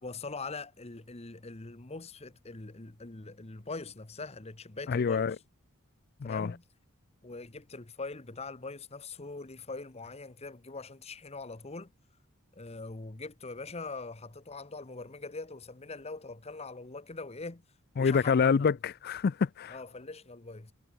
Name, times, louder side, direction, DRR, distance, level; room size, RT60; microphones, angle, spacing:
voice 1, 0.0-5.3 6.2-6.6 7.2-11.9 12.6-17.6 18.0-18.7 19.7-20.7, left 3 dB, 30° left, 1.1 m, -42 dB
voice 2, 4.9-5.4 6.2-6.5 18.0-19.8, left 5 dB, 45° left, 0.4 m, -26 dB
head